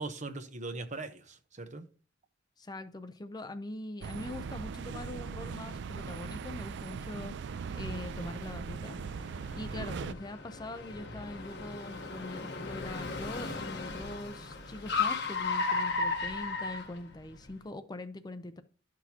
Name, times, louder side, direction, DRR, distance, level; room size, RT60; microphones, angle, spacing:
voice 1, 0.0-1.9 9.6-9.9, right 3 dB, 40° right, 0.9 m, -40 dB
voice 2, 2.6-9.0 9.5-18.6, left 2 dB, 20° left, 0.5 m, -43 dB
sound 1, 4.0-10.1, right 5 dB, 65° right, 0.4 m, -39 dB
Car, 7.6-17.5, left 4 dB, 60° left, 1.3 m, -36 dB
11.5 x 6.1 x 2.9 m
head